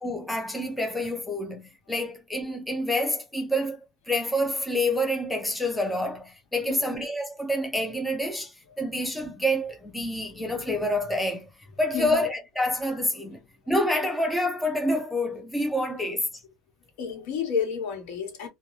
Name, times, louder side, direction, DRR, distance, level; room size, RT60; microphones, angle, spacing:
voice 1, 0.0-11.5 11.8-13.4 13.7-16.3, left 1 dB, 5° left, 0.5 m, -27 dB
voice 2, 11.9-12.2 17.0-18.5, left 7 dB, 85° left, 1.1 m, -30 dB
2.5 x 2.2 x 3.0 m
cardioid pair, 175°, 0 cm